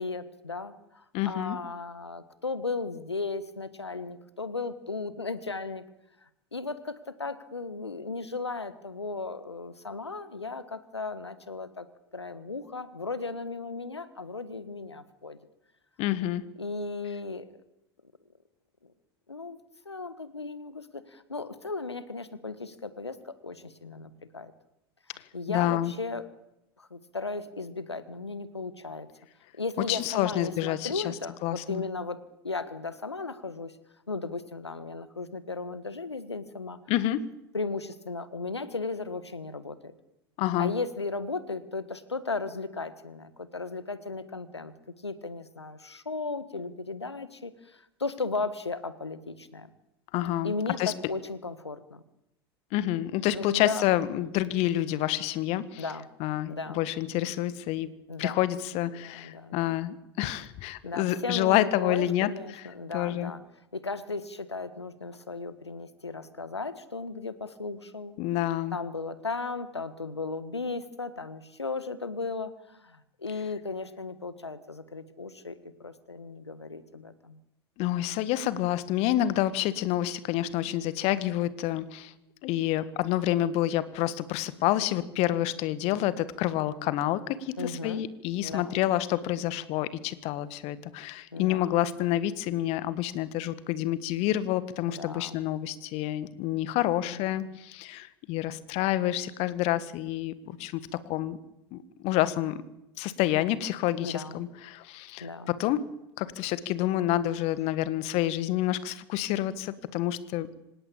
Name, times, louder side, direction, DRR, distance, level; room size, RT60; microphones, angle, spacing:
voice 1, 0.0-5.8 6.5-11.9 12.1-15.4 16.6-17.5 18.8-18.9 19.3-19.6 19.8-24.5 25.3-26.3 26.8-29.1 29.6-33.8 34.1-36.8 37.5-39.9 40.6-44.7 45.0-49.7 50.4-52.0 53.3-53.8 55.8-56.1 56.5-56.8 58.1-58.4 58.8-59.8 60.8-63.4 63.7-68.2 68.7-77.4 87.6-88.0 88.4-88.8 91.3-91.7 94.8-95.4 97.0-97.6 104.0-104.4 105.2-105.5, left 3 dB, 90° left, 14 dB, 1.6 m, -36 dB
voice 2, 1.1-1.6 16.0-16.4 25.5-25.9 29.9-31.0 31.4-31.8 36.9-37.3 40.4-40.7 50.1-50.9 52.7-55.8 56.2-57.9 58.2-62.6 62.9-63.3 68.2-68.8 77.8-82.1 82.4-101.4 101.7-102.6 103.0-105.9 106.2-110.5, left 13 dB, 50° left, 15 dB, 1.7 m, -28 dB
25.5 x 18.0 x 8.8 m, 0.90 s
figure-of-eight pair, 80°, 14 cm